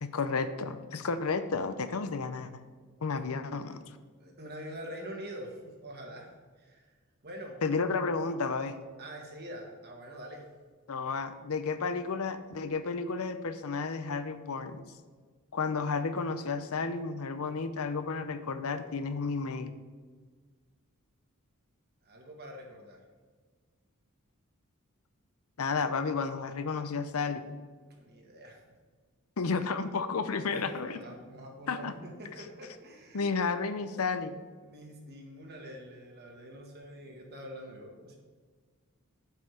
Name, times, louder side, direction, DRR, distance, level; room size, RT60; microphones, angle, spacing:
voice 1, 0.0-2.6 3.0-4.0 7.6-8.8 10.9-14.9 15.5-19.7 25.6-27.6 29.4-31.0 31.7-31.9 33.1-34.4, left 4 dB, 70° left, 10 dB, 0.7 m, -32 dB
voice 2, 4.2-6.3 6.6-6.8 7.2-7.6 9.0-10.4 22.0-23.0 27.8-28.6 30.3-34.0 34.6-38.2, equal, 50° right, 1 dB, 1.8 m, -45 dB
7.5 x 5.6 x 6.6 m, 1.5 s
head